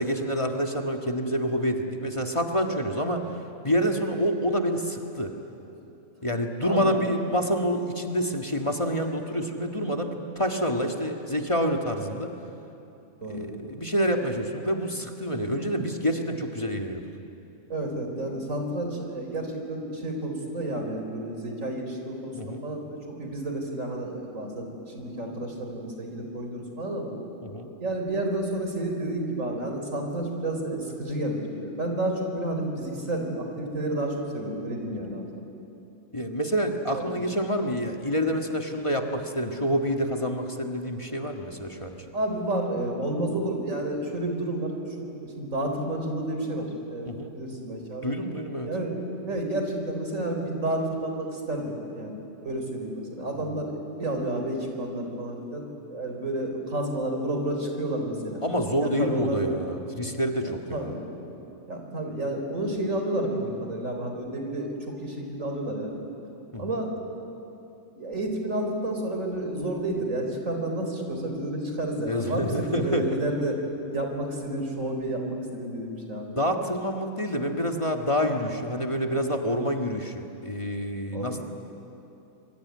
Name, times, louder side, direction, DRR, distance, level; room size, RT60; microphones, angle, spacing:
voice 1, 0.0-3.3 3.6-5.3 6.2-12.3 13.3-17.0 22.3-22.6 27.4-27.7 36.1-42.0 47.1-47.3 48.0-48.7 53.3-53.5 58.4-60.9 66.5-66.8 72.1-73.1 76.4-81.4, equal, 25° left, 3 dB, 1.7 m, -27 dB
voice 2, 6.6-7.0 13.2-13.5 15.5-15.7 17.7-27.1 27.8-35.5 36.9-37.3 42.1-47.1 47.3-48.2 48.6-58.4 58.8-59.5 60.7-61.1 61.7-66.0 66.6-67.0 68.0-73.6 73.9-76.3 81.1-81.4, right 1 dB, 85° right, 3 dB, 4.5 m, -31 dB
26.0 x 24.0 x 9.5 m, 2.8 s
omnidirectional pair, 1.3 m